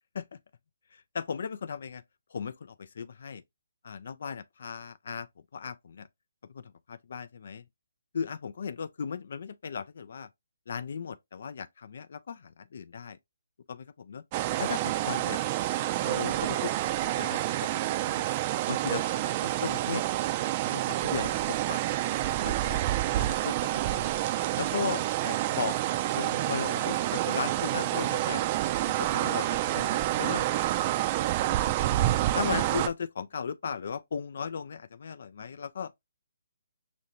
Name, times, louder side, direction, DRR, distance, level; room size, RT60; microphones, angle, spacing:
voice 1, 0.9-2.0 2.3-3.4 3.8-5.3 5.5-6.1 6.5-7.6 8.1-10.3 10.7-13.2 13.7-14.2 14.6-15.4 16.0-18.3 18.7-20.0 20.7-21.8 22.4-22.8 23.2-24.1 24.6-28.4 29.0-30.9 31.4-31.7 32.3-35.9, left 6 dB, 60° left, 0.3 m, -37 dB
sound 1, 14.3-32.9, right 15 dB, 30° right, 0.4 m, -28 dB
5.6 x 2.6 x 2.9 m
figure-of-eight pair, 145°, 0 cm